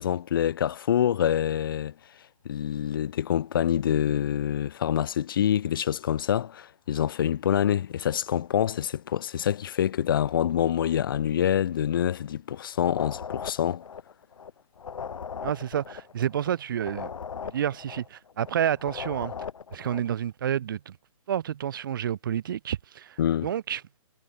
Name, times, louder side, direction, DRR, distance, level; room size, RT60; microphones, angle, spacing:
voice 1, 0.0-1.9 2.4-13.8 23.2-23.5, left 10 dB, 40° left, 0.8 m, -26 dB
sound 1, 12.8-14.5 14.8-18.5 18.8-20.1, left 6 dB, 65° left, 2.0 m, -38 dB
voice 2, 15.4-17.1 17.4-19.3 19.7-21.0 21.3-23.8, right 10 dB, 35° right, 0.7 m, -29 dB
hypercardioid pair, 160°, 18 cm